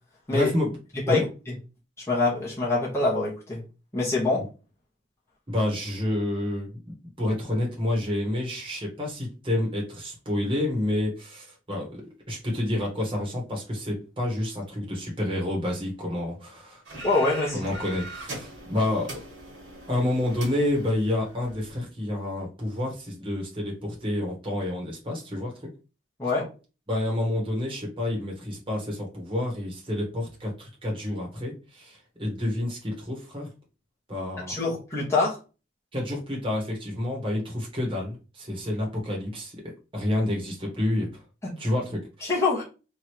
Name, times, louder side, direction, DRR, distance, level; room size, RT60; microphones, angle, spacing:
voice 1, 0.3-0.8 1.1-1.2 5.5-16.8 17.5-19.2 19.9-25.7 26.9-33.5 34.1-34.5 35.9-41.1 41.6-42.0, left 1 dB, 25° right, -1 dB, 1.2 m, -29 dB
voice 2, 2.1-3.6 3.9-4.4 17.0-17.6 26.2-26.5 34.4-35.4 41.4-41.5 42.2-42.6, left 3 dB, 15° left, -6 dB, 1.1 m, -24 dB
sound 1, 16.9-21.8, right 2 dB, 65° right, 1.5 m, -41 dB
3.2 x 2.6 x 4.5 m, 0.32 s
head